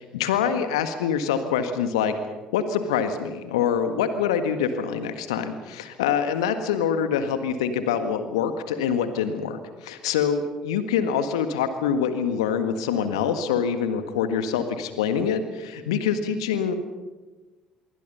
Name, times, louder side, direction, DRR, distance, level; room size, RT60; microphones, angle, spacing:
voice 1, 0.1-2.1 2.5-16.7, left 7 dB, 75° left, 9 dB, 1.7 m, -25 dB
26.0 x 23.0 x 5.6 m, 1.2 s
figure-of-eight pair, 50°, 3 cm